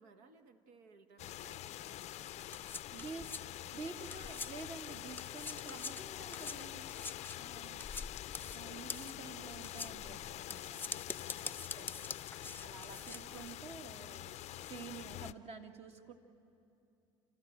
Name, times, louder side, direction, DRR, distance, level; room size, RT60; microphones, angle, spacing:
voice 1, 0.0-4.6 7.4-8.8 9.3-9.7 11.3-12.5 13.1-13.6, right 4 dB, 75° right, 7 dB, 1.4 m, -65 dB
sound 1, 1.2-15.3, left 14 dB, 55° left, 0.5 m, -46 dB
sound 2, 2.0-4.8 5.1-13.5, left 4 dB, 15° left, 0.6 m, -46 dB
voice 2, 2.9-3.4 3.7-6.9 7.4-7.9 8.5-16.1, right 4 dB, 50° right, 4 dB, 1.9 m, -50 dB
29.0 x 13.5 x 9.0 m, 2.6 s
hypercardioid pair, 70°, 13 cm